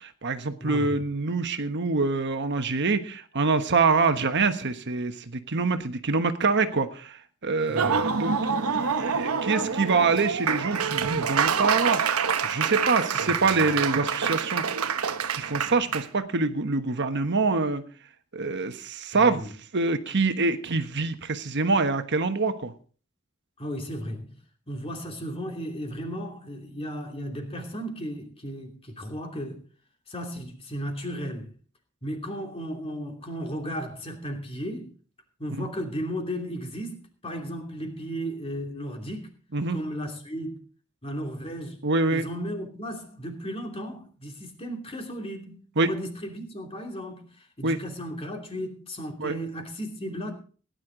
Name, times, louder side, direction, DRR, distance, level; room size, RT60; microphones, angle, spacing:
voice 1, 0.0-12.0 12.4-14.8 15.3-17.8 18.3-22.7 35.6-35.7 39.5-39.8 41.8-42.2 45.8-45.9 47.6-47.8 49.2-49.3, right 3 dB, 55° right, 8 dB, 1.2 m, -25 dB
voice 2, 0.6-1.0 7.7-8.0 13.2-13.3 19.1-19.5 23.6-24.3 24.7-29.6 30.1-31.5 32.0-34.9 35.4-39.3 39.7-40.6 41.0-41.8 42.1-50.3, equal, 25° left, 3 dB, 2.9 m, -35 dB
Laughter / Applause, 7.6-16.0, right 6 dB, 90° right, 1.1 m, -26 dB
17.0 x 10.5 x 3.9 m, 0.40 s
head